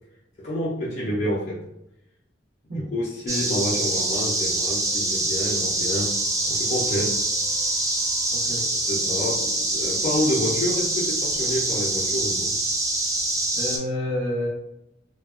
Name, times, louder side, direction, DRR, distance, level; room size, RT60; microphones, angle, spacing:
voice 1, 0.4-1.6 2.8-6.2 6.5-7.2 8.9-12.5, equal, 45° left, -6 dB, 0.5 m, -28 dB
sound 1, 3.3-13.8, right 2 dB, 20° right, 0.4 m, -25 dB
voice 2, 8.3-8.7 13.5-14.5, left 1 dB, 75° right, -10 dB, 1.0 m, -29 dB
2.7 x 2.1 x 2.3 m, 0.83 s
head